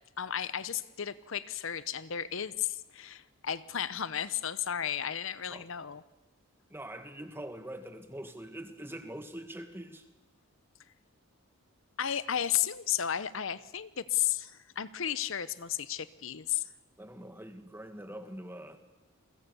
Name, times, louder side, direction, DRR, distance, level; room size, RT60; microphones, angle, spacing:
voice 1, 0.2-6.0 12.0-16.7, left 10 dB, 65° left, 16 dB, 0.8 m, -33 dB
voice 2, 6.7-10.1 17.0-18.8, right 1 dB, 10° right, 8 dB, 1.8 m, -43 dB
29.5 x 22.5 x 6.9 m, 1.1 s
head